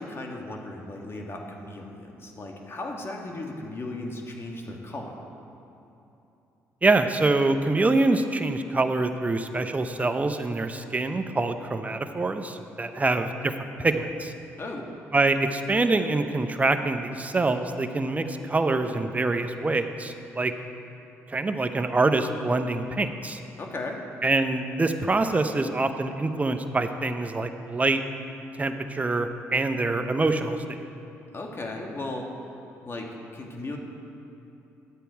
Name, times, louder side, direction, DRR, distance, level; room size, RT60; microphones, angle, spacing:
voice 1, 0.0-5.1 12.9-13.0 14.6-14.9 23.6-24.0 31.3-32.2 32.8-33.8, left 2 dB, 40° left, 1 dB, 1.5 m, -36 dB
voice 2, 6.8-13.5 13.8-14.3 15.1-20.5 21.3-23.4 24.2-28.0 28.6-30.9, right 2 dB, 25° right, 8 dB, 0.7 m, -25 dB
11.5 x 8.3 x 4.6 m, 2.9 s
supercardioid pair, 70°, 6 cm